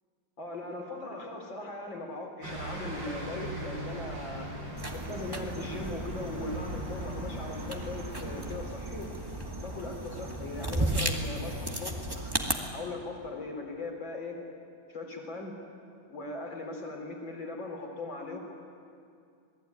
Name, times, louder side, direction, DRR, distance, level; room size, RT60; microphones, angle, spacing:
voice 1, 0.4-4.5 4.9-9.1 9.6-12.0 12.7-14.4 14.9-15.6 16.1-18.4, left 2 dB, 70° left, 2 dB, 4.8 m, -39 dB
sound 1, 2.4-8.6, right 1 dB, 65° right, 5.7 m, -40 dB
sound 2, 4.8-12.5, right 1 dB, 10° right, 1.9 m, -35 dB
27.5 x 20.0 x 9.4 m, 2.4 s
omnidirectional pair, 2.2 m